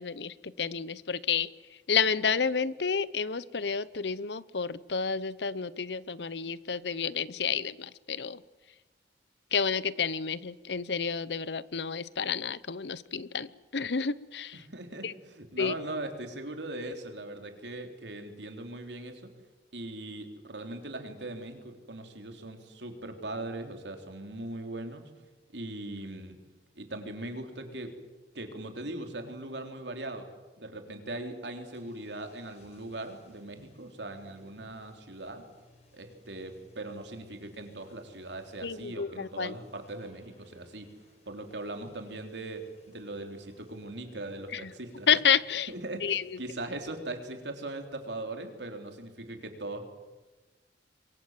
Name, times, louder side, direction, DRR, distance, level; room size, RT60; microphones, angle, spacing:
voice 1, 0.0-1.5 1.9-8.4 9.5-14.6 15.0-15.1 15.6-16.0 38.6-39.5 44.5-44.7 45.1-45.7 46.0-46.4, left 6 dB, 80° left, 18 dB, 0.9 m, -30 dB
voice 2, 14.5-19.3 19.7-25.1 25.5-26.4 26.8-27.9 28.3-30.3 30.6-35.4 35.9-40.9 41.3-45.1 45.7-49.8, right 2 dB, 85° right, 5 dB, 3.8 m, -40 dB
sound 1, 31.2-46.5, left 1 dB, 40° left, 4.5 m, -62 dB
27.5 x 23.0 x 7.6 m, 1.2 s
head